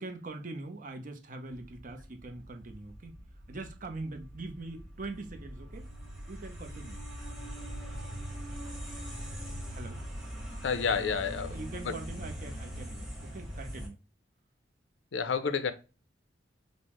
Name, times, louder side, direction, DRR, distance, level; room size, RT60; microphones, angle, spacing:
voice 1, 0.0-5.9 6.3-7.0 9.7-10.0 11.5-14.0, right 2 dB, 45° right, 0.7 m, -42 dB
sound 1, 1.5-13.9, equal, ahead, 1.0 m, -42 dB
voice 2, 10.6-11.5 11.9-12.0 15.1-15.7, left 5 dB, 75° left, 0.5 m, -29 dB
5.3 x 2.1 x 3.0 m
head